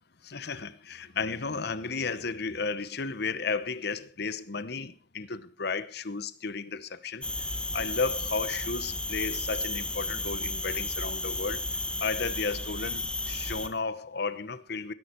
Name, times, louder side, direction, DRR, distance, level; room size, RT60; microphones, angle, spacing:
voice 1, 0.2-11.7 12.0-14.9, left 4 dB, 60° left, 1.0 m, -33 dB
sound 1, 7.2-13.7, left 2 dB, 5° left, 1.6 m, -33 dB
19.0 x 11.0 x 4.5 m
head